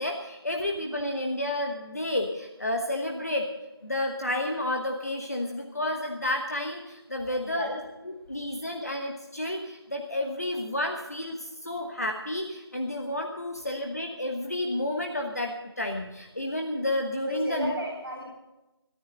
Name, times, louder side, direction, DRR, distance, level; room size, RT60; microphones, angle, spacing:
voice 1, 0.0-3.5 3.8-17.7, left 1 dB, 40° left, 2 dB, 1.2 m, -31 dB
voice 2, 7.3-7.7 17.2-18.2, right 1 dB, 5° right, -16 dB, 5.1 m, -34 dB
19.0 x 13.5 x 3.9 m, 0.97 s
figure-of-eight pair, 180°, 14 cm